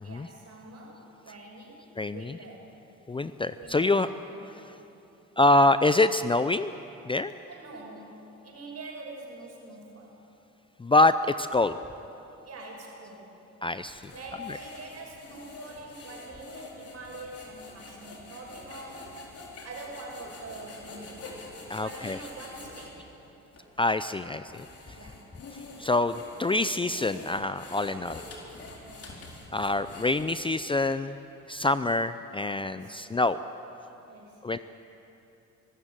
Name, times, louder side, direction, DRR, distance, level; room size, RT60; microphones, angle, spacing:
voice 1, 0.0-2.7 3.5-4.0 4.3-4.5 7.5-10.2 12.4-13.4 14.1-19.2 19.6-21.3 21.8-23.1 25.0-25.3 28.8-29.4 32.6-33.0 34.1-34.5, right 2 dB, 55° right, 0 dB, 5.8 m, -45 dB
voice 2, 2.0-2.4 3.1-4.1 5.4-6.7 7.0-7.3 10.8-11.8 13.6-14.1 14.5-14.6 21.7-22.2 23.8-24.7 25.8-28.2 29.5-31.2 31.5-33.4 34.4-34.6, left 2 dB, 15° left, 12 dB, 0.5 m, -25 dB
sound 1, 13.8-22.9 23.5-23.6 24.3-30.5, left 3 dB, 50° left, 4.4 m, -46 dB
25.0 x 13.5 x 9.1 m, 2.9 s
cardioid pair, 90°, 30 cm